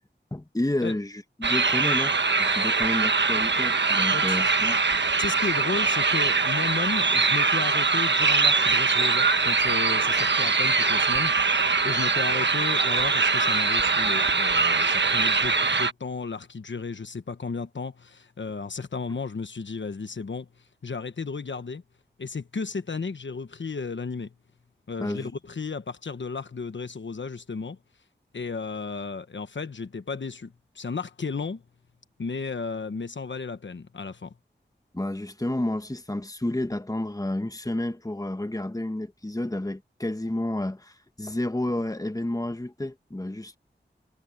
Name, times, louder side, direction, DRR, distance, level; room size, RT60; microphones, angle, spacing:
voice 1, 0.3-4.8 25.0-25.3 34.9-43.6, left 1 dB, 20° left, 1.3 m, -30 dB
sound 1, 1.4-15.9, right 4 dB, 75° right, 1.2 m, -22 dB
voice 2, 4.1-4.4 5.2-20.5 20.8-21.8 22.2-24.3 24.9-27.8 28.3-31.6 32.2-34.3, left 4 dB, 80° left, 1.1 m, -34 dB
wide cardioid pair, 50°, 19 cm